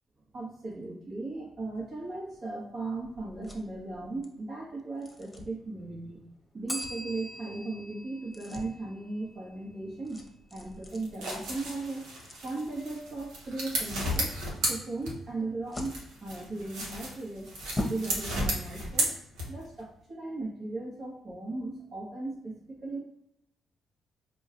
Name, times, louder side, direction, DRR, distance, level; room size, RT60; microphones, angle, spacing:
voice 1, 0.3-6.3 6.5-10.2 10.5-12.1 12.4-14.4 14.7-17.6 17.9-19.1 19.5-23.0, right 2 dB, 45° right, -3 dB, 1.2 m, -37 dB
sound 1, 1.7-18.1, left 1 dB, 20° left, 0.9 m, -45 dB
Bell, 6.7-9.5, equal, 10° right, 1.1 m, -42 dB
sound 2, 10.9-15.5 15.8-19.8, right 1 dB, 75° right, 1.0 m, -34 dB
5.1 x 2.3 x 2.5 m, 0.79 s
hypercardioid pair, 45°, 0 cm